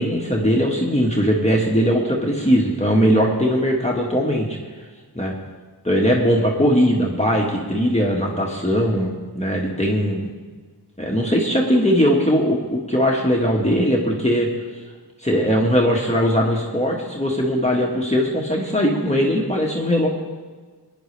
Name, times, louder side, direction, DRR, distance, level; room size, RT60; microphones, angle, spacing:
voice 1, 0.0-4.6 5.2-5.3 5.8-10.3 11.0-14.5 15.2-20.1, equal, 15° left, -2 dB, 1.8 m, -20 dB
22.0 x 10.0 x 3.4 m, 1.4 s
wide cardioid pair, 50°, 40 cm